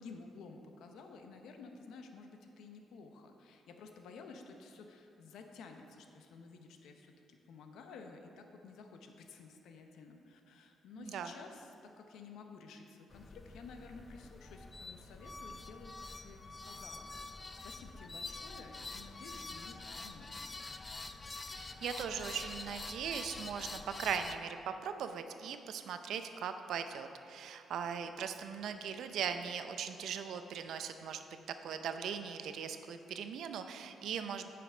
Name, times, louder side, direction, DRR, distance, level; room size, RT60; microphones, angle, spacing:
voice 1, 0.0-16.4 16.7-17.1 17.6-20.4, left 4 dB, 80° left, 4 dB, 0.8 m, -53 dB
voice 2, 11.0-11.3 21.5-31.2 31.6-34.5, right 7 dB, 75° right, 8 dB, 0.5 m, -39 dB
sound 1, 13.1-24.4, left 3 dB, 25° left, 0.4 m, -46 dB
9.0 x 6.1 x 5.0 m, 2.7 s
cardioid pair, 90°, 0 cm